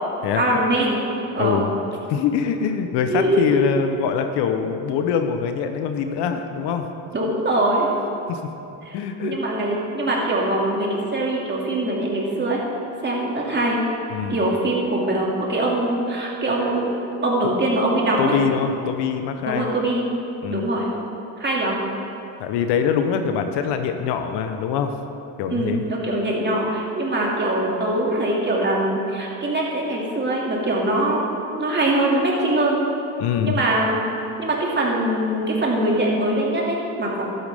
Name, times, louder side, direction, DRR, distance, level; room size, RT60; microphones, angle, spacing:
voice 1, 0.3-1.0 1.3-1.6 3.1-3.4 7.1-7.9 8.8-12.6 13.0-13.8 14.3-16.9 17.2-18.4 19.5-20.0 20.5-20.9 21.4-21.8 25.5-32.8 33.4-34.0 34.4-37.2, right 1 dB, 25° right, -3 dB, 2.3 m, -22 dB
voice 2, 1.4-1.7 2.1-6.8 8.3-8.4 8.9-9.3 14.1-14.4 18.2-19.7 20.4-20.6 22.4-24.9 25.4-25.8 33.2-33.6, left 7 dB, 70° left, 7 dB, 0.9 m, -24 dB
12.0 x 8.8 x 3.5 m, 2.8 s
supercardioid pair, 85°, 42 cm